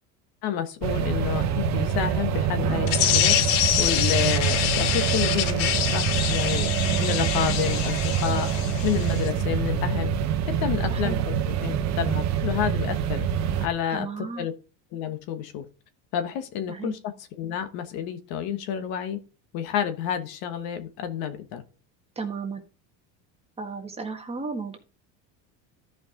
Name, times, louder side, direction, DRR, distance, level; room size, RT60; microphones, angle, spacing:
voice 1, 0.4-3.4 3.8-6.7 7.0-8.5 8.8-10.1 10.6-13.3 13.6-14.5 14.9-15.6 16.1-17.0 17.4-19.2 19.5-21.6, left 9 dB, 65° left, 1.3 m, -29 dB
sound 1, 0.8-13.7, right 8 dB, 45° right, 1.1 m, -25 dB
sound 2, 2.9-9.3, left 12 dB, 85° left, 1.1 m, -26 dB
voice 2, 10.9-11.2 13.9-14.5 16.7-16.9 22.1-22.6 23.6-24.8, right 4 dB, 15° right, 1.6 m, -34 dB
13.5 x 5.2 x 3.8 m
cardioid pair, 145°, 40 cm